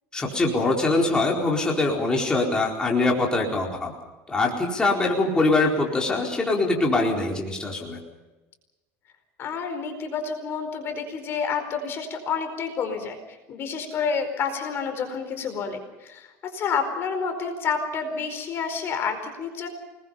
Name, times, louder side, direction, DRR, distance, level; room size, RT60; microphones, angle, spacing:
voice 1, 0.1-3.9 4.3-8.0, left 2 dB, 15° left, -1 dB, 4.4 m, -23 dB
voice 2, 9.4-13.2 13.5-19.7, left 6 dB, 40° left, 7 dB, 4.5 m, -29 dB
28.5 x 20.5 x 5.7 m, 1.1 s
cardioid pair, 135°, 6 cm